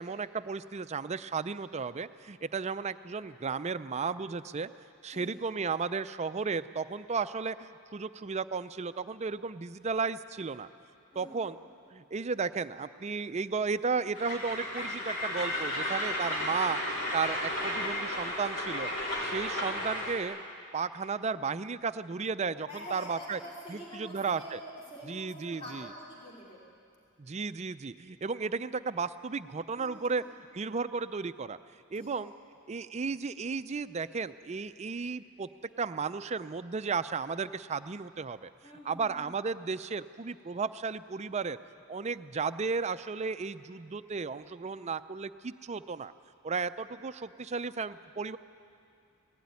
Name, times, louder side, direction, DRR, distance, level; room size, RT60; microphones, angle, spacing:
voice 1, 0.0-4.7 5.0-10.7 11.2-11.6 11.9-16.8 17.1-18.9 19.2-20.4 20.7-23.4 23.7-24.6 25.1-25.9 27.2-30.2 30.5-31.6 31.9-32.3 32.7-35.5 35.8-38.5 38.8-41.6 41.9-46.1 46.4-48.4, right 5 dB, 30° right, 13 dB, 0.4 m, -34 dB
Train, 14.1-20.2, left 1 dB, 60° left, 4.8 m, -33 dB
voice 2, 22.7-26.6 29.7-30.1 31.9-32.2 38.6-39.2, equal, 25° left, -5 dB, 3.2 m, -46 dB
19.0 x 16.0 x 9.6 m, 2.5 s
head